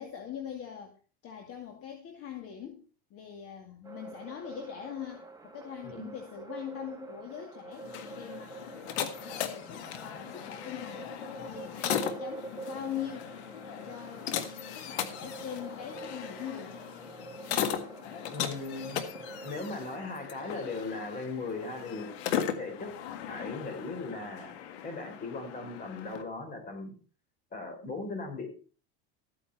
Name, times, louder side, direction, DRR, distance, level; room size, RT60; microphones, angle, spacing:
voice 1, 0.0-2.8 3.1-8.6 9.0-11.1 11.4-13.3 13.8-14.4 14.7-16.8, left 9 dB, 45° left, 3 dB, 2.3 m, -42 dB
sound 1, 3.8-19.7, right 3 dB, 10° right, 1.8 m, -46 dB
sound 2, 7.7-26.2, left 9 dB, 85° left, 1.7 m, -38 dB
voice 2, 18.3-19.0 19.4-22.1 22.6-22.9 23.3-24.5 24.8-26.9 27.5-28.5, left 3 dB, 25° left, 4 dB, 4.8 m, -38 dB
14.0 x 9.4 x 4.3 m, 0.38 s
supercardioid pair, 130°, 32 cm